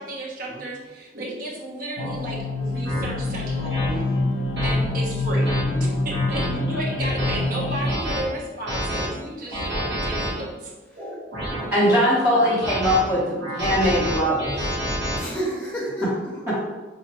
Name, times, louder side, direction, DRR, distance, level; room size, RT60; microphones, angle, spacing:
voice 1, 0.0-3.8 4.6-5.5 5.8-10.7, right 1 dB, 50° right, -2 dB, 0.6 m, -33 dB
sound 1, 1.1-1.3 2.0-2.1 2.8-3.0 3.7-3.9 4.6-4.7 5.3-5.6 6.1-6.5 7.0-7.3 7.8-8.2 8.7-9.1 9.5-10.3 11.0-11.7 12.3-13.0 13.4-15.2, equal, 70° right, 1.0 m, -28 dB
sound 2, 2.0-8.0, left 2 dB, 75° left, 0.4 m, -25 dB
voice 2, 3.8-4.2 5.7-6.1 10.9-11.1 11.7-11.9 15.2-16.4, right 1 dB, 10° left, -6 dB, 1.0 m, -32 dB
voice 3, 11.7-14.7 16.5-16.6, equal, 15° right, -11 dB, 0.8 m, -21 dB
4.0 x 2.1 x 2.8 m, 1.3 s
head